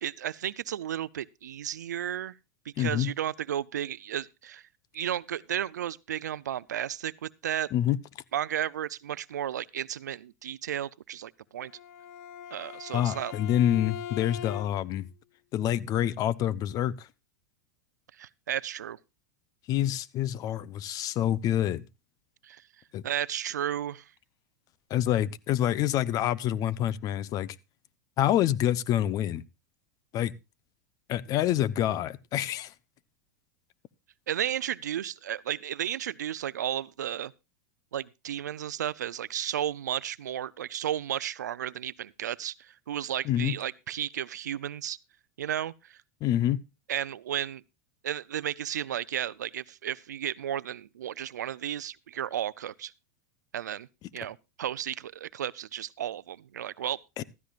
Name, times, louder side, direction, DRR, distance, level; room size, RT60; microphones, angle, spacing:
voice 1, 0.0-2.4 2.8-4.6 4.9-7.7 8.3-11.7 12.5-13.3 18.2-19.0 22.4-22.6 23.0-24.1 34.3-37.3 37.9-45.0 45.4-46.0 46.9-47.6 48.0-52.9 53.5-53.9 54.1-57.0, right 10 dB, 90° right, 0.5 m, -33 dB
voice 2, 2.8-3.1 7.7-8.0 12.9-15.1 15.5-17.1 19.7-21.8 22.9-23.0 24.9-27.6 28.2-29.4 30.1-30.3 31.1-32.7 43.2-43.5 46.2-46.6 57.2-57.3, left 11 dB, 40° left, 0.8 m, -27 dB
Bowed string instrument, 11.6-15.0, left 10 dB, 65° left, 1.5 m, -41 dB
15.0 x 13.5 x 2.4 m
hypercardioid pair, 110°, 9 cm